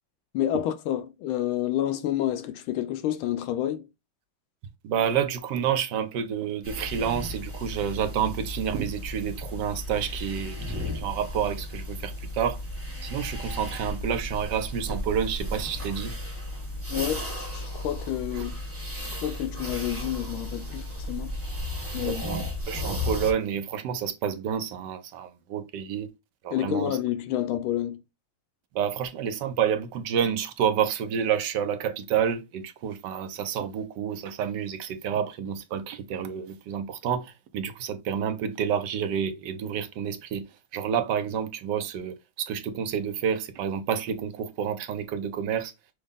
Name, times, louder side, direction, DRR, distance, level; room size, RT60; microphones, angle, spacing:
voice 1, 0.3-3.9 16.9-18.5 18.9-21.3 21.9-22.3 26.5-28.0, left 12 dB, 85° left, 1.4 m, -29 dB
voice 2, 4.8-12.6 13.0-16.1 18.3-18.4 21.9-26.1 26.4-27.0 28.7-40.5 40.7-45.7, right 8 dB, 70° right, 1.2 m, -29 dB
sound 1, 6.6-23.3, left 1 dB, 10° right, 0.8 m, -34 dB
6.4 x 2.3 x 3.5 m
omnidirectional pair, 2.2 m